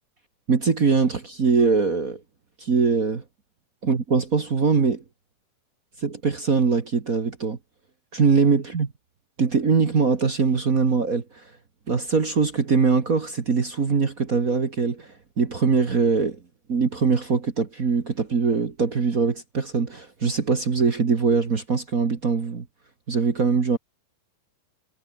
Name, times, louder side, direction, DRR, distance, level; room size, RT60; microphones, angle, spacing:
voice 1, 0.5-2.2 2.6-3.2 3.8-5.0 6.0-7.6 8.1-8.9 9.4-11.2 11.9-15.1 15.4-16.4 16.7-22.6 23.1-23.8, right 5 dB, 45° right, 1.1 m, -22 dB
omnidirectional pair, 4.3 m